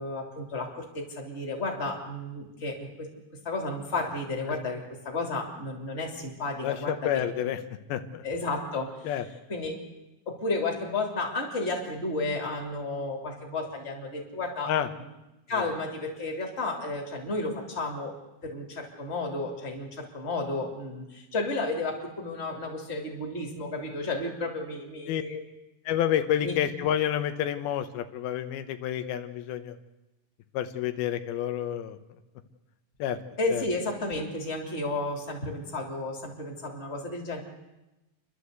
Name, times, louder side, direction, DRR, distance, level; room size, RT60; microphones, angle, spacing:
voice 1, 0.0-3.1 3.4-7.3 8.2-9.2 9.5-9.8 10.3-15.1 15.5-18.2 18.4-25.4 26.4-26.6 33.4-37.4, left 2 dB, 20° left, 1 dB, 2.7 m, -32 dB
voice 2, 6.6-7.6 7.9-8.2 9.0-9.3 14.7-14.9 25.1-25.2 25.9-29.8 30.5-32.0 33.0-33.2 33.5-33.6, left 10 dB, 90° left, 9 dB, 2.9 m, -29 dB
29.5 x 11.5 x 8.1 m, 1.0 s
omnidirectional pair, 4.2 m